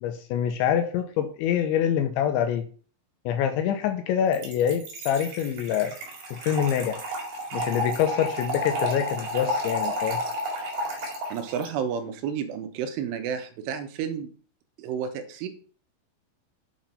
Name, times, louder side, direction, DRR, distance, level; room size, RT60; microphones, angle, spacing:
voice 1, 0.0-2.7 3.3-5.9 6.3-7.0 7.5-10.2, left 9 dB, 85° left, 7 dB, 2.9 m, -25 dB
Trickle dribble / Fill (with liquid), 4.3-11.7, equal, 55° right, 3.8 m, -31 dB
voice 2, 11.3-14.3 14.8-15.5, right 7 dB, 85° right, 7 dB, 3.5 m, -31 dB
8.7 x 6.0 x 5.5 m, 0.41 s
omnidirectional pair, 5.6 m